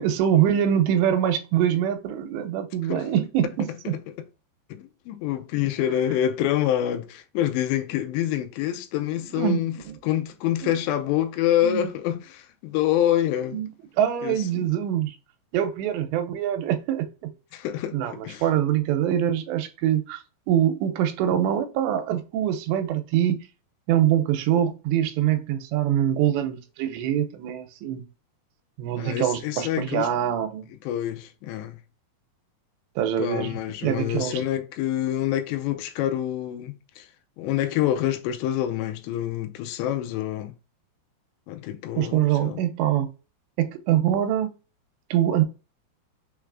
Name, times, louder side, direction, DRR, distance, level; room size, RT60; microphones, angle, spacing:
voice 1, 0.0-4.0 9.3-9.6 9.9-10.1 10.6-10.8 11.6-11.9 13.5-13.7 14.0-15.2 15.5-17.3 17.9-20.2 20.5-23.4 23.9-28.1 28.8-30.6 33.0-34.4 42.0-43.1 43.6-44.5 45.1-45.4, right 10 dB, 90° right, 2.9 m, -24 dB
voice 2, 4.7-9.8 10.0-13.6 14.2-14.7 17.5-18.4 29.0-30.1 30.8-31.8 33.2-37.1 37.4-40.5 41.5-42.6, left 12 dB, 90° left, 2.9 m, -26 dB
6.6 x 3.3 x 2.3 m
omnidirectional pair, 5.0 m